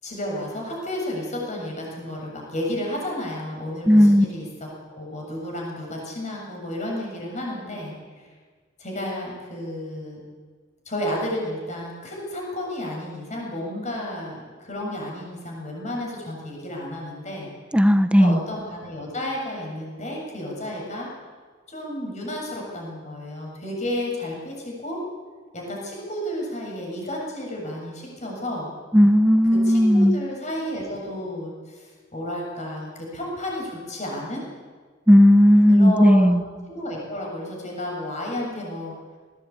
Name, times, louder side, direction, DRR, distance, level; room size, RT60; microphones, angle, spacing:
voice 1, 0.0-8.3 8.8-10.2 10.9-17.5 18.2-21.1 21.7-25.0 25.5-28.7 29.5-34.4 35.7-39.0, left 1 dB, 35° left, -2 dB, 7.4 m, -32 dB
voice 2, 3.9-4.2 17.7-18.4 28.9-30.2 35.1-36.4, equal, 5° right, 11 dB, 0.8 m, -15 dB
20.0 x 18.0 x 8.7 m, 1.5 s
head